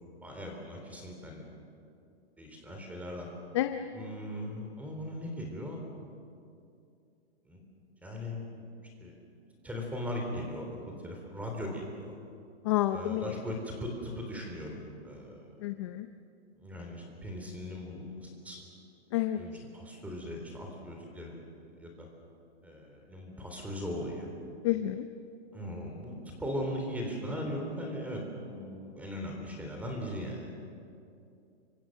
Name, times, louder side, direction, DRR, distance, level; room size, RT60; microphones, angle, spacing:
voice 1, 0.2-1.5 2.4-3.3 3.9-5.9 7.5-7.6 8.0-8.5 9.0-9.1 9.6-10.7 11.0-12.1 12.9-14.8 15.0-15.5 16.6-18.6 19.4-21.4 21.8-22.1 22.6-24.3 25.5-26.1 26.4-30.5, left 1 dB, 5° right, 1 dB, 3.6 m, -39 dB
voice 2, 12.7-13.2 15.6-16.1 19.1-19.4 24.6-25.0, left 14 dB, 25° left, 9 dB, 0.6 m, -29 dB
29.5 x 25.0 x 6.6 m, 2.5 s
hypercardioid pair, 165°, 34 cm